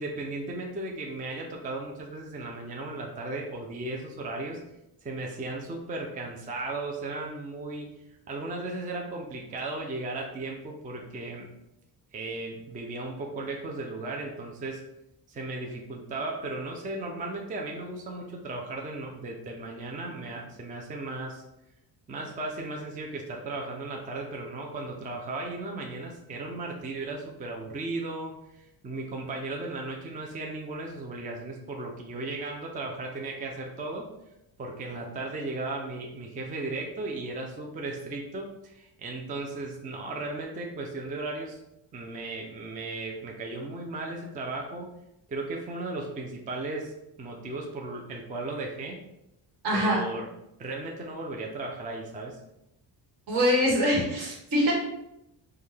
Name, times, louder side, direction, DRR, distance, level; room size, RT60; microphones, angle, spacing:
voice 1, 0.0-4.6 5.0-7.9 8.3-11.5 12.1-14.8 15.3-21.4 22.1-34.1 34.6-41.6 41.9-44.9 45.3-46.9 47.2-49.0 49.7-50.3 50.6-52.4, right 2 dB, 20° right, 0 dB, 0.3 m, -36 dB
voice 2, 49.6-50.0 53.3-54.7, equal, 65° right, -2 dB, 1.5 m, -24 dB
5.4 x 2.2 x 3.2 m, 0.86 s
cardioid pair, 155°, 44 cm